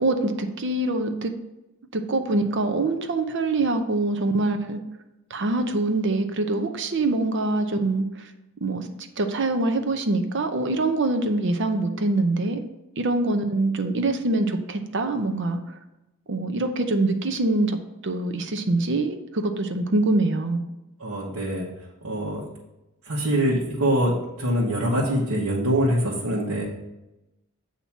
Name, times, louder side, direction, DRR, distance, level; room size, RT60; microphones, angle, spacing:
voice 1, 0.0-1.3 1.9-4.8 5.3-8.3 8.6-8.9 9.2-12.6 13.0-15.8 16.3-20.6, right 2 dB, 55° right, 7 dB, 0.6 m, -24 dB
voice 2, 21.0-21.7 22.0-22.4 23.0-26.6, equal, 85° right, -6 dB, 1.2 m, -24 dB
8.6 x 2.9 x 5.8 m, 0.96 s
head